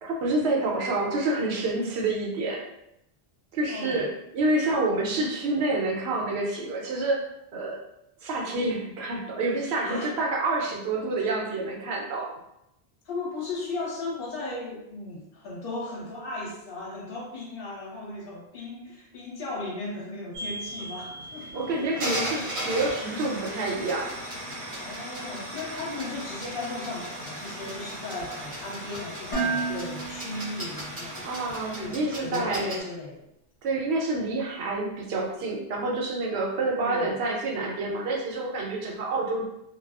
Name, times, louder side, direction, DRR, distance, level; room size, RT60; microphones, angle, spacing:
voice 1, 0.0-2.6 3.5-7.2 7.5-7.8 8.2-12.3 21.5-24.1 31.2-32.8 33.6-39.4, right 2 dB, 85° right, -1 dB, 0.8 m, -28 dB
voice 2, 3.7-4.1 9.8-10.1 13.0-22.4 23.0-23.3 24.8-31.5 31.7-33.2 36.8-37.1, left 2 dB, 65° left, -4 dB, 0.9 m, -36 dB
sound 1, 20.3-32.8, right 1 dB, 55° right, 1.0 m, -36 dB
Dishes pots and pans, 29.3-31.4, right 4 dB, 40° left, 0.6 m, -32 dB
2.4 x 2.3 x 2.3 m, 0.83 s
omnidirectional pair, 1.0 m